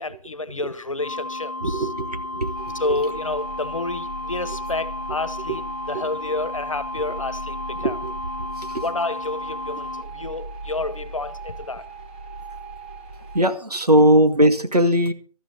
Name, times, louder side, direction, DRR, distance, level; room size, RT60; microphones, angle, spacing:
voice 1, 0.0-1.9 2.8-8.0 8.8-11.8, left 2 dB, 55° left, 1.4 m, -29 dB
sound 1, 1.0-10.0, left 2 dB, 20° left, 0.8 m, -33 dB
voice 2, 1.6-2.7 7.8-8.1 8.6-8.8 13.3-15.1, equal, 80° right, 1.9 m, -19 dB
sound 2, 2.5-13.4, right 3 dB, 15° right, 1.3 m, -38 dB
19.0 x 13.5 x 3.9 m
figure-of-eight pair, 165°, 20 cm